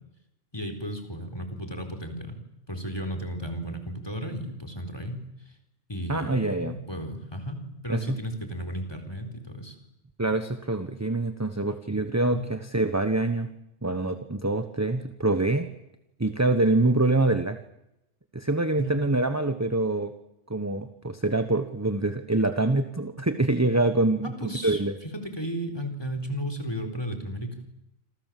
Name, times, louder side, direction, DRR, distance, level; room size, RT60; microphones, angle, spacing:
voice 1, 0.5-2.4 2.7-5.2 5.9-9.8 12.3-12.5 18.8-19.0 24.2-24.8 25.1-27.7, equal, 20° left, 7 dB, 4.1 m, -34 dB
voice 2, 6.1-6.7 7.9-8.2 10.2-13.5 13.8-15.7 16.2-17.6 18.3-20.1 20.5-24.9, right 2 dB, 15° right, 9 dB, 1.1 m, -25 dB
27.5 x 27.0 x 7.7 m, 0.88 s
omnidirectional pair, 1.3 m